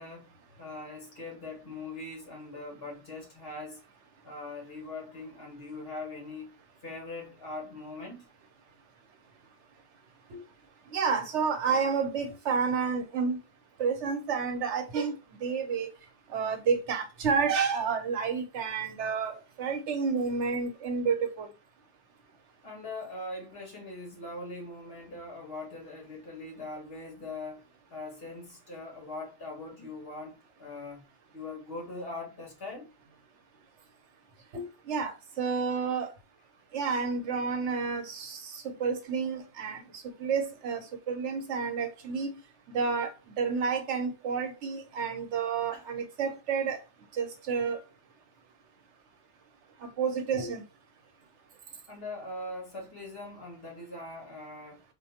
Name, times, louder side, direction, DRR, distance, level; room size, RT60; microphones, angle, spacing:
voice 1, 0.0-3.8 4.2-6.6 6.8-8.2 22.6-27.6 27.9-31.0 31.3-32.9 45.7-45.8 51.9-54.8, left 2 dB, 55° left, 1.5 m, -41 dB
voice 2, 10.9-13.4 13.8-15.2 15.4-15.9 16.3-21.5 34.5-36.1 36.7-42.3 42.7-43.1 43.4-46.8 47.1-47.8 49.8-50.6, right 5 dB, 85° right, 1.1 m, -30 dB
3.9 x 2.3 x 2.8 m
omnidirectional pair, 1.2 m